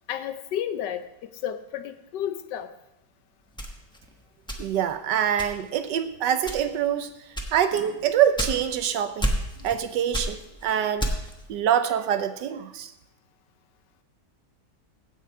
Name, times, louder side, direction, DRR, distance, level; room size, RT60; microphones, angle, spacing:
voice 1, 0.1-2.7, left 10 dB, 80° left, 10 dB, 1.3 m, -32 dB
sound 1, 3.6-5.0 5.4-5.8 6.4-6.9 7.3-8.9 9.2-9.8 10.1-11.4, equal, 5° left, 0.9 m, -30 dB
voice 2, 4.6-7.1 7.5-9.3 9.6-11.1 11.5-12.9, right 9 dB, 80° right, 11 dB, 1.4 m, -25 dB
16.0 x 5.7 x 4.7 m, 0.90 s
omnidirectional pair, 1.9 m